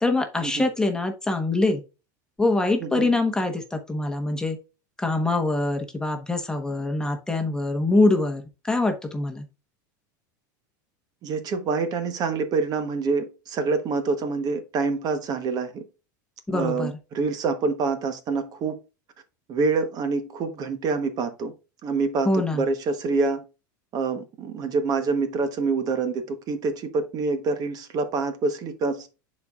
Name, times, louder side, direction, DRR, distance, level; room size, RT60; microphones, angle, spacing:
voice 1, 0.0-1.8 2.4-4.6 5.0-9.4 16.5-16.9 22.2-22.6, left 2 dB, 5° left, 1.1 m, -24 dB
voice 2, 2.8-3.1 11.2-15.8 16.5-18.8 19.5-21.5 21.8-23.4 23.9-29.1, right 4 dB, 40° right, 1.0 m, -26 dB
10.0 x 4.2 x 2.4 m
supercardioid pair, 130°, 10 cm